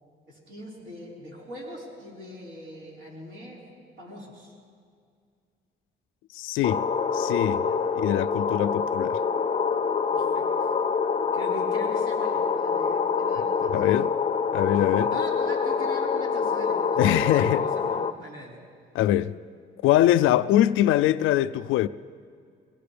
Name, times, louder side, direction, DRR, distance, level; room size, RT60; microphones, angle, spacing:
voice 1, 0.3-3.6 4.0-4.5 7.6-7.8 10.1-10.5 11.3-14.2 15.1-18.6, equal, 65° right, 4.9 m, -42 dB
voice 2, 6.3-6.8 7.1-7.6 8.0-9.2 13.7-14.1 14.5-15.2 17.0-17.6 18.9-19.4 19.8-21.9, left 13 dB, 90° left, 0.4 m, -23 dB
sound 1, 6.6-18.1, left 5 dB, 30° left, 0.7 m, -26 dB
22.5 x 17.5 x 3.4 m
cardioid pair, 90°, 20 cm